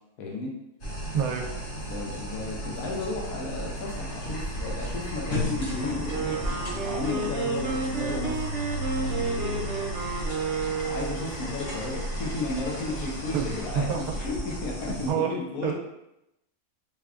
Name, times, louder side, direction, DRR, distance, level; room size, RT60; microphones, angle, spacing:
voice 1, 0.2-0.5 1.9-8.4 9.0-9.8 10.8-13.9 14.2-15.7, left 3 dB, 80° left, -1 dB, 1.2 m, -34 dB
sound 1, 0.8-15.1, right 1 dB, 60° left, 1.4 m, -34 dB
voice 2, 1.1-1.5 13.3-13.5 13.7-14.0 15.1-15.3 15.6-15.7, right 8 dB, 85° right, 2 dB, 1.1 m, -26 dB
sound 2, 3.6-13.7, equal, 20° left, 0.6 m, -44 dB
Wind instrument woodwind instrument, 6.0-11.3, right 4 dB, 60° right, 0.9 m, -31 dB
3.4 x 3.3 x 2.4 m, 0.87 s
omnidirectional pair, 1.5 m